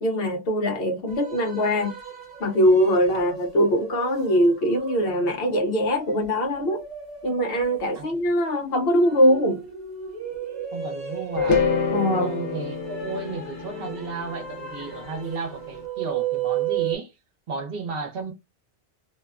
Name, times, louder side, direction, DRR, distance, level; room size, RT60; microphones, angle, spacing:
voice 1, 0.0-2.0 2.4-6.8 7.2-9.6 11.9-12.3, equal, 65° left, 0.8 m, -22 dB
sound 1, 1.1-17.0, right 8 dB, 40° right, 1.1 m, -35 dB
voice 2, 10.7-11.7 12.2-17.1 17.5-18.3, right 4 dB, 60° right, 0.9 m, -33 dB
sound 2, 11.4-15.5, left 5 dB, 85° left, 1.0 m, -27 dB
2.6 x 2.2 x 2.3 m
omnidirectional pair, 1.2 m